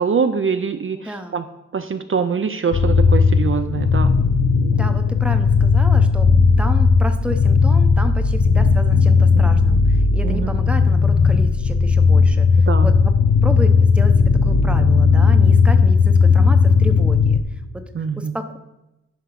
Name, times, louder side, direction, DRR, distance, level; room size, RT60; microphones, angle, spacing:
voice 1, 0.0-1.4 1.7-4.2 10.2-10.5 12.7-12.9 17.9-18.4, right 6 dB, 45° right, 9 dB, 0.5 m, -23 dB
voice 2, 0.9-1.4 4.7-6.3 6.6-13.1 13.4-17.4 17.7-17.8 18.2-18.6, right 1 dB, 5° right, 7 dB, 0.7 m, -31 dB
sound 1, 2.7-17.4, left 5 dB, 70° left, 0.8 m, -15 dB
10.5 x 4.9 x 5.8 m, 0.95 s
wide cardioid pair, 130°, 29 cm